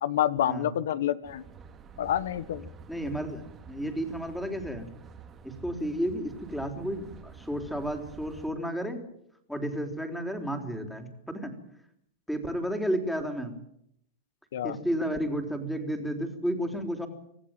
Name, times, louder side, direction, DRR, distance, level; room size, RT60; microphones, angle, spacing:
voice 1, 0.0-1.4 2.0-2.7 14.5-14.8, left 11 dB, 80° left, 16 dB, 1.3 m, -28 dB
sound 1, 1.2-8.5, right 5 dB, 25° right, 2.3 m, -49 dB
voice 2, 2.9-4.9 5.4-9.0 9.5-11.5 12.3-13.6 14.6-17.1, equal, ahead, 5 dB, 3.8 m, -32 dB
26.5 x 15.0 x 9.1 m, 0.73 s
supercardioid pair, 140°, 0 cm